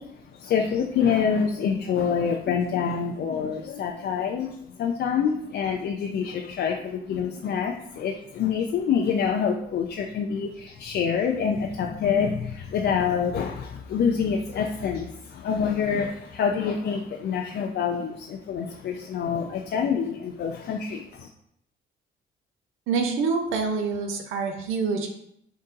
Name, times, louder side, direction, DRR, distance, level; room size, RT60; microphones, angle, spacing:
voice 1, 0.0-21.3, left 6 dB, 60° left, 1 dB, 0.4 m, -26 dB
voice 2, 22.9-25.1, right 4 dB, 90° right, 4 dB, 0.6 m, -26 dB
3.8 x 2.7 x 3.8 m, 0.73 s
cardioid pair, 90°, 20 cm